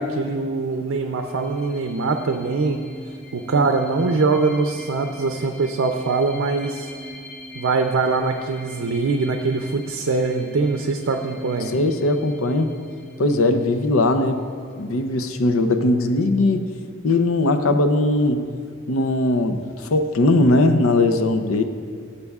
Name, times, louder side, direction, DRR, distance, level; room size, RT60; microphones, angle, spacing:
voice 1, 0.0-2.8 3.3-6.9 7.5-11.7, right 3 dB, 70° right, 4 dB, 0.5 m, -22 dB
sound 1, 1.1-14.4, left 1 dB, 35° left, 1.7 m, -40 dB
voice 2, 11.6-12.7 13.2-14.4 14.8-16.7 17.0-18.4 18.9-21.6, left 2 dB, 90° left, 7 dB, 0.6 m, -19 dB
17.5 x 6.7 x 2.4 m, 2.1 s
head